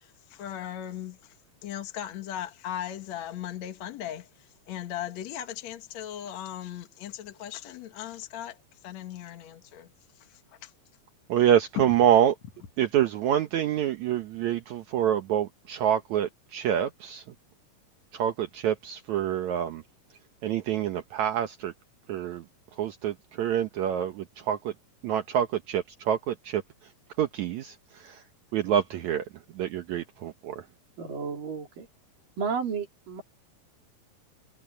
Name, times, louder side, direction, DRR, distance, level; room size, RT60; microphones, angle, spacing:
voice 1, 0.0-1.3 1.6-4.3 4.7-8.6 8.8-9.9 10.6-10.7 11.8-11.9, left 11 dB, 60° left, 2.5 m, -38 dB
voice 2, 11.3-12.4 12.8-17.2 18.1-19.8 20.4-21.7 22.1-22.5 22.8-24.7 25.0-26.6 27.2-28.2 28.5-29.3 29.5-30.7, right 10 dB, 65° right, 2.2 m, -26 dB
voice 3, 31.0-31.9 32.4-33.2, right 6 dB, 85° right, 5.3 m, -32 dB
omnidirectional pair, 3.8 m